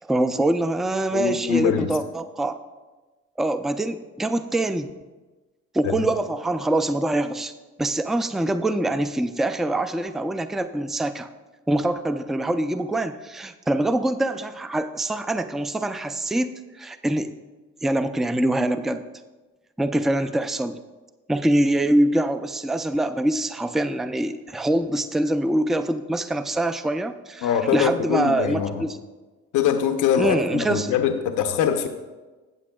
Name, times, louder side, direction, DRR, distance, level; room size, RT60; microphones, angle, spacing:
voice 1, 0.0-2.6 3.4-4.9 5.7-7.5 7.8-11.3 11.7-17.3 17.8-19.0 19.8-20.8 21.3-29.0 30.2-30.9, right 1 dB, ahead, 10 dB, 0.3 m, -24 dB
voice 2, 1.1-1.9 6.0-6.1 27.4-28.8 29.5-31.9, left 8 dB, 90° left, 6 dB, 0.7 m, -23 dB
14.5 x 7.6 x 2.3 m, 1.2 s
cardioid pair, 90°, 30 cm